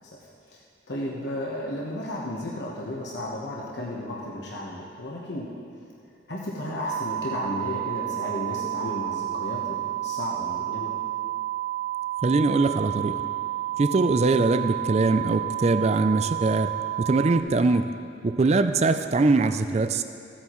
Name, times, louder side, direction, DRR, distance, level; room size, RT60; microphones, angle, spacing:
voice 1, 0.9-5.5 6.3-10.9, left 1 dB, 70° left, -4 dB, 1.2 m, -33 dB
sound 1, 6.8-17.4, right 15 dB, 65° right, 1.5 m, -30 dB
voice 2, 12.2-13.2 13.8-16.7 17.0-17.9 18.2-20.0, right 3 dB, 35° right, 10 dB, 0.4 m, -22 dB
15.5 x 8.7 x 3.1 m, 2.6 s
head